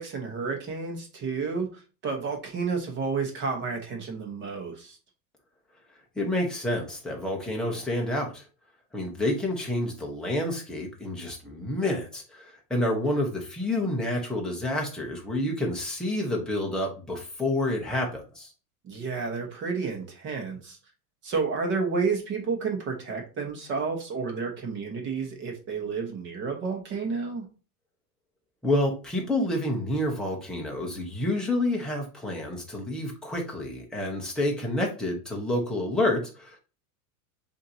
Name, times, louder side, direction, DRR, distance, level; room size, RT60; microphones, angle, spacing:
voice 1, 0.0-5.0 18.8-20.8 21.2-27.5, right 5 dB, 25° right, 2 dB, 1.0 m, -31 dB
voice 2, 6.2-8.4 8.9-18.5 28.6-36.6, left 1 dB, ahead, -1 dB, 0.7 m, -29 dB
7.2 x 2.7 x 2.7 m, 0.34 s
supercardioid pair, 155°, 44 cm